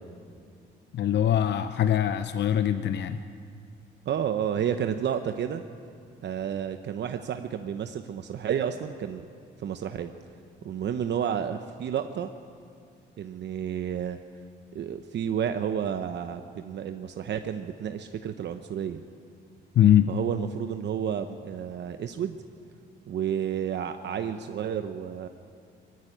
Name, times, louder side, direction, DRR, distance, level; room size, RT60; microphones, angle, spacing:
voice 1, 0.9-3.2 19.7-20.1, left 10 dB, 60° left, 10 dB, 0.7 m, -22 dB
voice 2, 4.1-5.6 6.2-9.2 9.6-10.1 10.6-12.3 13.2-14.2 14.7-19.0 20.1-22.4 23.1-25.3, right 8 dB, 60° right, 7 dB, 0.9 m, -31 dB
20.0 x 14.0 x 9.9 m, 2.3 s
cardioid pair, 90°, 20 cm